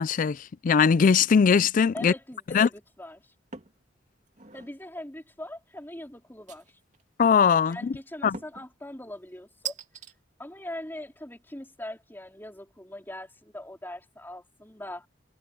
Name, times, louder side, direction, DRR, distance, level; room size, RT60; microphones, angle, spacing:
voice 1, 0.0-2.1 2.5-2.7 7.2-7.9 8.2-8.4, left 6 dB, 45° left, 0.4 m, -21 dB
voice 2, 1.9-3.2 4.5-6.7 7.7-9.8 10.4-15.1, left 1 dB, 10° left, 3.6 m, -41 dB
sound 1, 3.5-3.8 4.3-4.8 6.5-7.0 8.3-8.7 9.7-10.1, right 7 dB, 45° right, 2.5 m, -39 dB
head